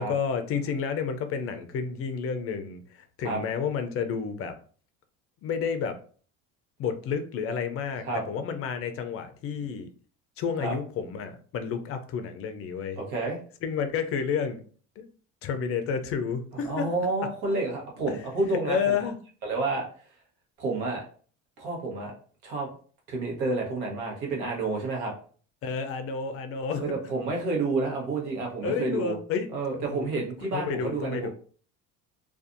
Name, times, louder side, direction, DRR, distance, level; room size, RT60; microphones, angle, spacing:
voice 1, 0.0-4.6 5.4-6.0 6.8-9.9 10.4-13.0 13.6-14.6 15.0-15.1 15.4-16.9 18.6-19.2 25.6-26.8 28.6-29.5 29.8-30.1 30.4-31.3, left 6 dB, 45° left, 8 dB, 0.4 m, -30 dB
voice 2, 13.0-13.4 16.5-19.0 19.4-19.8 20.6-21.0 21.6-22.1 22.4-22.7 23.1-25.1 26.8-29.2 29.5-31.3, right 3 dB, 80° right, -1 dB, 1.1 m, -29 dB
2.5 x 2.3 x 2.5 m, 0.43 s
cardioid pair, 115°, 32 cm